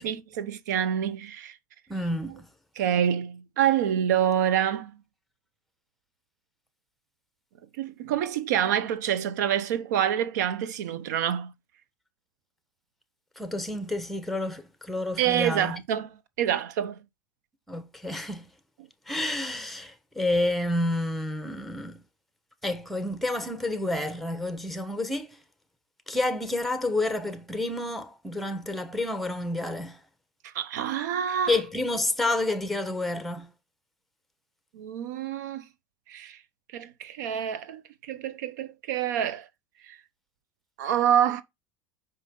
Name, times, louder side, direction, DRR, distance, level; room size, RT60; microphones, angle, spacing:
voice 1, 0.0-1.6 2.8-4.9 7.8-11.5 15.2-17.0 30.4-31.6 34.7-35.6 36.1-36.4 36.7-37.8 38.1-39.5 39.9-40.0 40.8-41.4, right 10 dB, 80° right, 0.8 m, -27 dB
voice 2, 1.9-2.5 13.4-15.8 17.7-18.4 19.1-22.0 22.6-25.4 26.1-30.0 31.5-33.5, left 2 dB, ahead, 1.3 m, -29 dB
5.5 x 5.4 x 3.8 m
hypercardioid pair, 90°, 9 cm